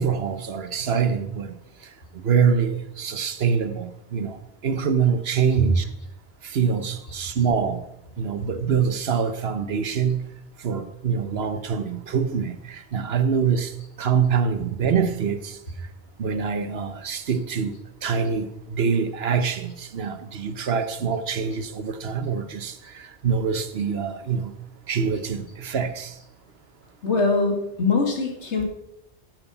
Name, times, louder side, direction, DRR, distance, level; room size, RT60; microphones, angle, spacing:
voice 1, 0.0-1.6 2.1-4.4 4.6-5.9 6.4-7.9 8.2-10.3 10.6-13.7 14.0-15.6 16.2-24.5 24.9-26.1, right 6 dB, 65° right, 1.1 m, -25 dB
voice 2, 27.0-28.6, left 3 dB, 80° left, 2.5 m, -22 dB
12.5 x 7.6 x 5.5 m
omnidirectional pair, 1.1 m